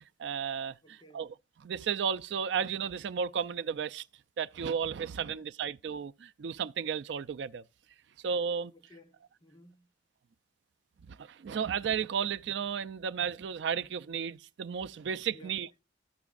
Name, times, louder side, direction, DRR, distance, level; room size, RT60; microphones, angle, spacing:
voice 1, 0.2-1.3 1.6-4.0 4.4-7.6 8.2-8.7 11.1-15.7, right 7 dB, 65° right, 0.4 m, -33 dB
voice 2, 0.8-1.3 5.1-5.5 8.7-9.9 15.3-15.6, equal, 25° left, 0.7 m, -57 dB
14.0 x 6.0 x 2.4 m
head